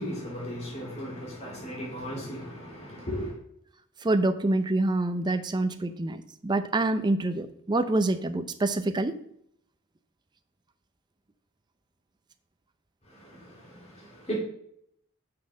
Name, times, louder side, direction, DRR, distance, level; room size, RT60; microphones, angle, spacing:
voice 1, 0.0-3.4 13.0-14.4, equal, 30° left, -4 dB, 2.8 m, -36 dB
voice 2, 4.0-9.2, right 2 dB, 20° right, 8 dB, 0.5 m, -26 dB
6.4 x 5.7 x 6.2 m, 0.70 s
head